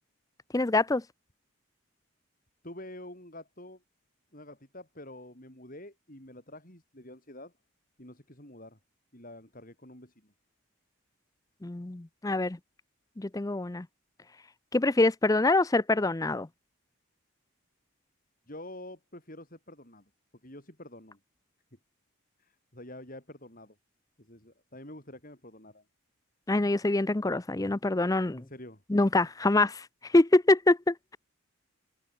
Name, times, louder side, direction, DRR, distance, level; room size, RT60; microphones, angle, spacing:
voice 1, 0.5-1.0 11.6-12.6 13.2-13.9 14.7-16.5 26.5-28.4 28.9-31.2, left 2 dB, 15° left, 0.5 m, -25 dB
voice 2, 2.6-3.8 4.3-7.5 8.0-8.8 9.1-10.3 18.5-20.0 20.4-21.2 22.4-23.8 24.2-25.8 28.3-28.8, left 1 dB, 40° left, 7.6 m, -47 dB
head